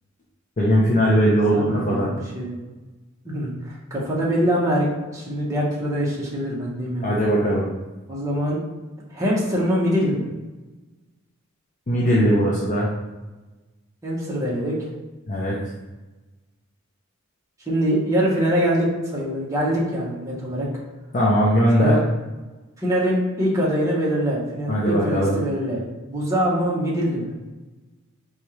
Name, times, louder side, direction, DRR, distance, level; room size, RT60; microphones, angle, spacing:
voice 1, 0.6-2.1 7.0-7.7 11.9-12.9 15.3-15.6 21.1-22.0 24.7-25.4, equal, 35° left, -6 dB, 0.5 m, -19 dB
voice 2, 1.5-2.6 3.2-7.1 8.1-8.6 9.1-10.2 14.0-14.8 17.7-20.7 21.8-22.0 22.8-25.8 26.1-27.3, equal, 15° right, -6 dB, 0.9 m, -23 dB
4.1 x 2.4 x 3.1 m, 1.2 s
head